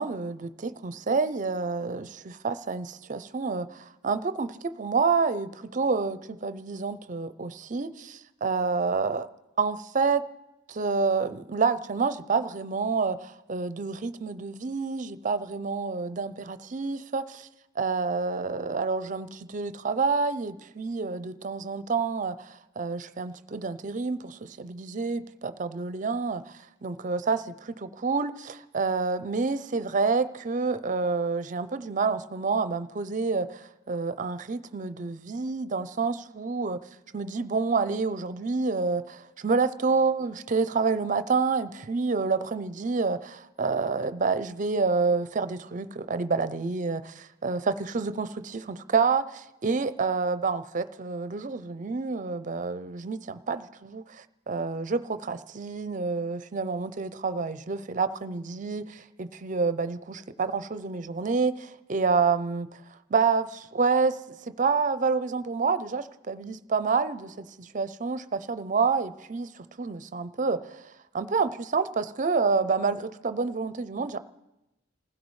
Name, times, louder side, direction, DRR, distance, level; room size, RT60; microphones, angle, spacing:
voice 1, 0.0-9.3 9.6-10.2 10.7-17.5 17.8-36.8 37.1-62.7 63.1-70.8 71.1-74.2, right 4 dB, 40° right, 12 dB, 0.5 m, -28 dB
27.0 x 15.5 x 3.2 m, 0.96 s
head